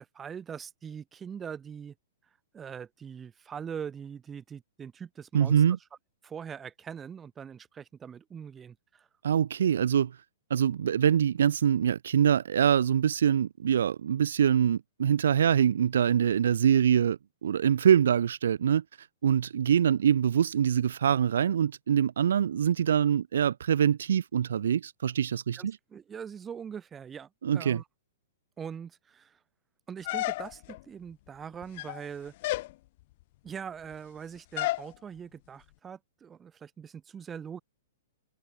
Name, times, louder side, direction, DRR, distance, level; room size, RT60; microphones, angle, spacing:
voice 1, 0.0-1.9 2.5-5.6 6.2-9.1 25.6-27.8 28.6-29.4 29.9-32.3 33.4-37.6, right 7 dB, 20° right, 3.2 m, -42 dB
voice 2, 5.3-5.8 9.2-10.1 10.5-25.8 27.4-27.8, right 8 dB, 75° right, 0.6 m, -24 dB
sound 1, 30.0-30.8 31.6-32.0 32.4-32.7 34.6-34.9, left 18 dB, 50° left, 1.9 m, -31 dB
hypercardioid pair, 125°, 0 cm